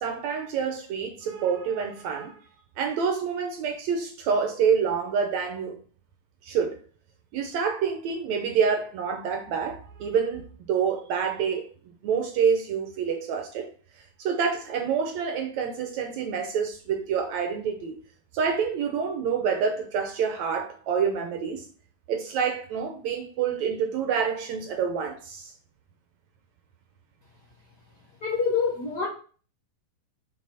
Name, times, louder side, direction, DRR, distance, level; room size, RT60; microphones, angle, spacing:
voice 1, 0.0-2.4 2.8-5.8 6.4-6.8 7.3-11.7 12.0-13.7 14.2-18.0 18.3-21.7 22.1-25.5, right 6 dB, 70° right, 1.9 m, -27 dB
voice 2, 28.2-29.1, left 5 dB, 60° left, 1.1 m, -26 dB
6.4 x 5.2 x 4.2 m
omnidirectional pair, 3.8 m